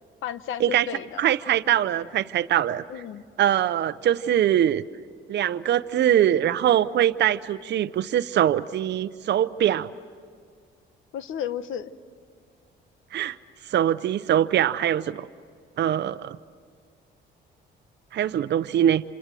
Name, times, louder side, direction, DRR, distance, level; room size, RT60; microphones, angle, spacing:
voice 1, 0.2-1.3 2.9-3.2 11.1-11.9, left 9 dB, 80° left, 13 dB, 1.0 m, -33 dB
voice 2, 1.2-2.8 3.4-4.8 5.3-9.9 13.1-13.4 13.7-15.3 15.8-16.4 18.1-19.0, right 11 dB, 60° right, 11 dB, 0.7 m, -22 dB
27.0 x 27.0 x 7.6 m, 2.1 s
cardioid pair, 90°, 20 cm